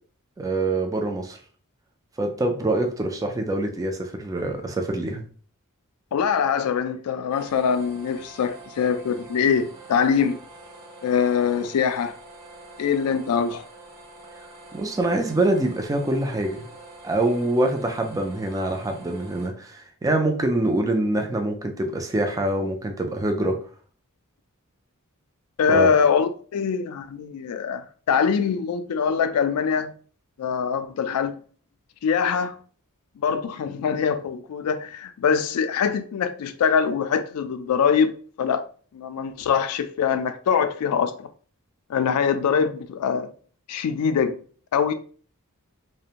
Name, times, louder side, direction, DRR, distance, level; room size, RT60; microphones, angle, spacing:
voice 1, 0.4-1.4 2.2-5.3 14.7-16.7 17.0-23.6 25.7-25.9, right 1 dB, 15° right, 0.3 m, -25 dB
voice 2, 6.1-10.4 11.0-12.2 12.8-13.6 25.6-29.9 30.4-31.3 32.0-32.6 33.2-38.7 38.9-41.3 41.9-43.3 43.7-44.4 44.7-44.9, left 6 dB, 85° left, 0.3 m, -23 dB
sound 1, 7.3-19.5, right 2 dB, 90° right, 0.8 m, -45 dB
2.5 x 2.1 x 2.8 m
head